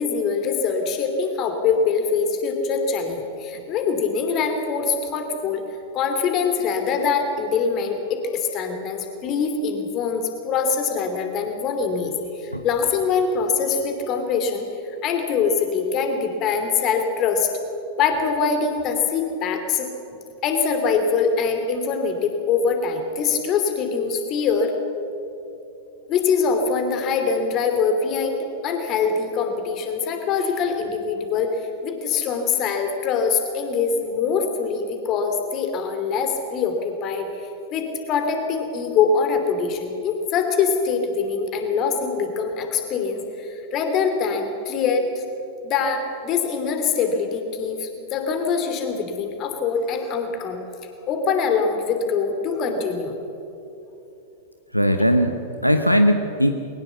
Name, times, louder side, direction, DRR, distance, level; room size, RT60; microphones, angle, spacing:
voice 1, 0.0-5.6 5.9-12.1 12.4-17.5 18.0-19.9 20.4-24.7 26.1-37.3 37.7-45.0 45.6-50.6 51.1-53.2, left 5 dB, 35° left, 6 dB, 3.0 m, -23 dB
voice 2, 54.7-56.5, equal, 90° left, 7 dB, 1.0 m, -19 dB
21.5 x 18.5 x 7.2 m, 2.9 s
figure-of-eight pair, 90°, 0 cm